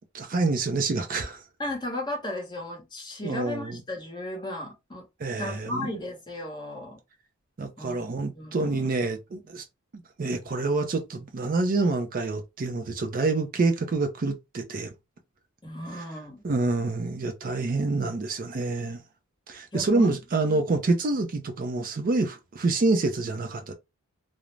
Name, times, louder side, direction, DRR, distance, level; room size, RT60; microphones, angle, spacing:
voice 1, 0.1-1.4 3.2-3.8 5.2-6.0 7.6-9.6 10.2-14.9 15.9-16.0 16.4-19.0 19.5-23.7, right 3 dB, 40° right, 0.4 m, -27 dB
voice 2, 1.6-5.0 5.4-7.0 7.8-8.1 8.3-8.9 15.6-16.4 19.7-20.1, left 1 dB, 20° left, 0.8 m, -35 dB
2.5 x 2.0 x 3.1 m
head